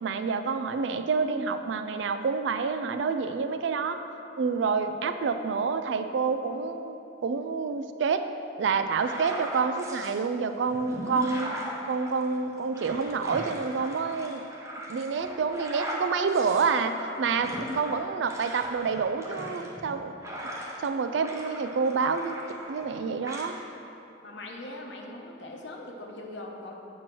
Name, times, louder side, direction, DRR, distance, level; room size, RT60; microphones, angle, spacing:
voice 1, 0.0-4.0 4.4-7.0 7.2-8.2 8.6-11.5 11.9-14.4 14.9-20.1 20.8-22.4 22.7-23.6, right 5 dB, 80° right, 9 dB, 0.4 m, -28 dB
sound 1, 8.9-10.2 10.7-20.9 21.2-22.9 23.2-23.5, equal, 15° right, 0.8 m, -39 dB
voice 2, 24.2-26.8, left 2 dB, 75° left, 0 dB, 1.0 m, -41 dB
7.6 x 4.6 x 6.0 m, 3.0 s
head